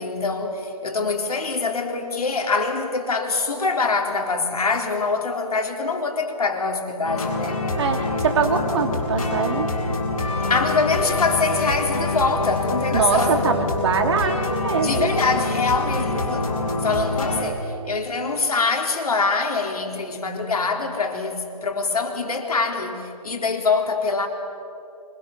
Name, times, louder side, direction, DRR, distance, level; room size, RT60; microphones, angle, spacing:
voice 1, 0.0-7.7 10.4-13.5 14.8-24.3, left 4 dB, 80° left, 4.2 m, -24 dB
sound 1, 7.0-17.4, left 2 dB, 65° left, 7.6 m, -25 dB
voice 2, 7.8-9.7 12.9-15.2, right 5 dB, 45° right, 2.7 m, -23 dB
27.5 x 25.5 x 7.3 m
hypercardioid pair, 160°, 19 cm